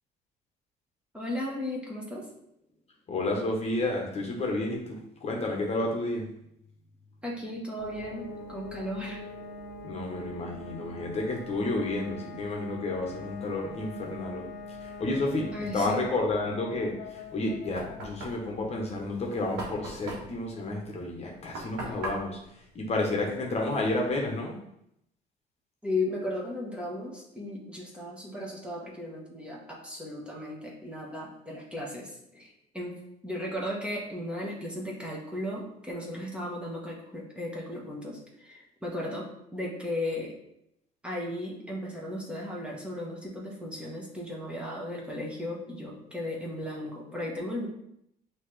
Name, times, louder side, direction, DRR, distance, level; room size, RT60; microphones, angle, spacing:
voice 1, 1.1-2.3 7.2-9.2 15.5-16.0 21.8-21.9 25.8-33.0 33.2-40.4 41.0-47.7, left 1 dB, 5° right, -4 dB, 1.1 m, -36 dB
voice 2, 3.1-6.3 9.8-14.5 14.8-15.5 15.7-22.4 22.7-24.5, left 2 dB, 40° left, 0 dB, 1.0 m, -31 dB
sound 1, 7.8-22.4, left 3 dB, 80° left, 0.6 m, -44 dB
Knock, 17.2-23.7, right 1 dB, 80° right, 1.2 m, -41 dB
5.6 x 2.9 x 3.2 m, 0.77 s
cardioid pair, 110°, 17 cm